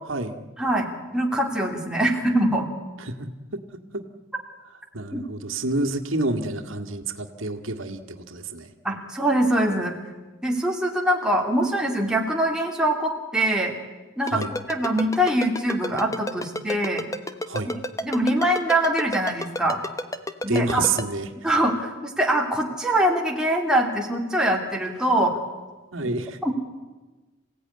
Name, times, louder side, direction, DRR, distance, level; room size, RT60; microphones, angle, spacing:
voice 1, 0.6-2.7 5.1-5.2 8.8-10.0 10.4-13.7 14.2-14.4 14.7-17.0 17.7-19.8 20.4-20.8 21.4-25.4 26.0-26.1 26.4-26.5, right 1 dB, 5° right, 0 dB, 2.7 m, -23 dB
voice 2, 3.0-3.6 3.9-4.0 4.9-8.7 14.3-14.5 17.5-17.7 20.5-21.3 25.9-26.4, right 3 dB, 85° right, 5 dB, 2.0 m, -28 dB
Ringtone, 14.3-21.0, left 1 dB, 15° left, 1.0 m, -29 dB
27.5 x 16.5 x 9.8 m, 1.2 s
head